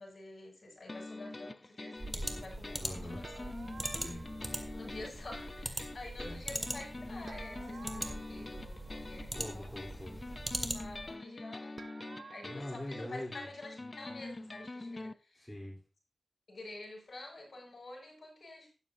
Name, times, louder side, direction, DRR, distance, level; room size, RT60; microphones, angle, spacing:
voice 1, 0.0-3.4 4.5-9.9 10.6-11.8 12.3-15.5 16.5-18.7, left 2 dB, 55° left, -1 dB, 6.8 m, -49 dB
sound 1, 0.9-15.1, left 2 dB, 35° left, 0.4 m, -45 dB
sound 2, 2.0-11.1, right 1 dB, 25° right, 1.8 m, -41 dB
voice 2, 2.8-3.2 3.9-4.2 6.2-6.4 9.3-10.2 12.4-13.3 15.4-15.8, left 1 dB, 15° left, -3 dB, 3.6 m, -43 dB
sound 3, 3.2-4.6 7.3-9.2 11.8-12.5, right 4 dB, 65° right, 0.6 m, -52 dB
13.0 x 11.0 x 2.7 m, 0.34 s
wide cardioid pair, 65°, 0 cm